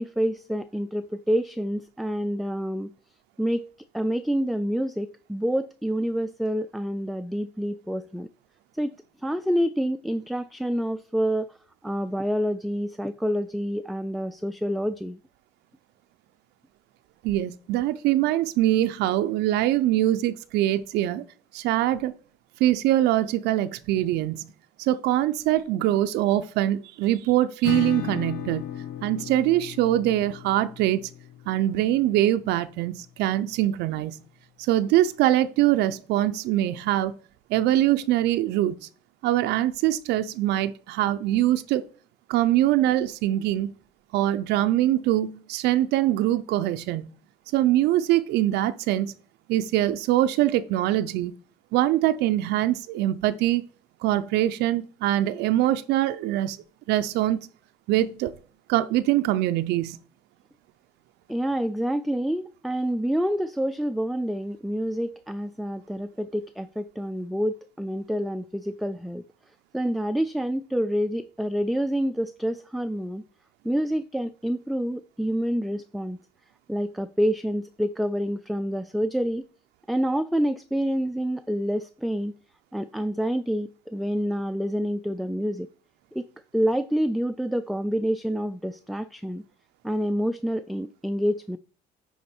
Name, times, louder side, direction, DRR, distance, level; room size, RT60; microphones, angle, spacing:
voice 1, 0.0-2.9 3.4-3.7 3.9-8.3 8.7-8.9 9.2-11.6 11.8-15.2 61.3-69.2 69.7-73.2 73.6-76.2 76.7-79.4 79.9-82.3 82.7-85.7 86.1-86.3 86.5-89.4 89.8-91.6, equal, ahead, 0.3 m, -27 dB
voice 2, 17.2-21.2 21.5-22.1 22.6-24.5 24.8-28.7 29.0-31.1 31.5-34.2 34.6-37.2 37.5-38.9 39.2-41.8 42.3-43.7 44.1-47.1 47.5-49.1 49.5-51.3 51.7-53.6 54.0-56.6 56.9-57.5 57.9-58.3 58.7-60.0, right 13 dB, 85° right, 0.5 m, -23 dB
Acoustic guitar / Strum, 27.6-33.1, left 10 dB, 75° left, 0.8 m, -36 dB
10.0 x 3.9 x 4.4 m
cardioid pair, 110°, 17 cm